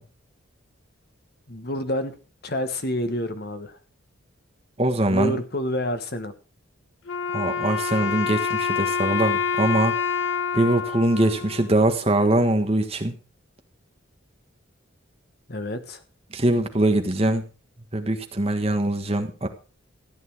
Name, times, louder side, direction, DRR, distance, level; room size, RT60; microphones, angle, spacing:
voice 1, 1.5-2.1 2.4-3.8 5.1-6.3 15.5-16.0, equal, 50° left, 8 dB, 1.4 m, -28 dB
voice 2, 4.8-5.4 7.3-9.9 10.5-13.1 16.3-17.4 17.9-19.5, right 1 dB, 30° right, 6 dB, 1.5 m, -22 dB
Wind instrument woodwind instrument, 7.1-12.2, left 6 dB, 75° left, 1.0 m, -27 dB
14.0 x 9.5 x 4.7 m, 0.35 s
head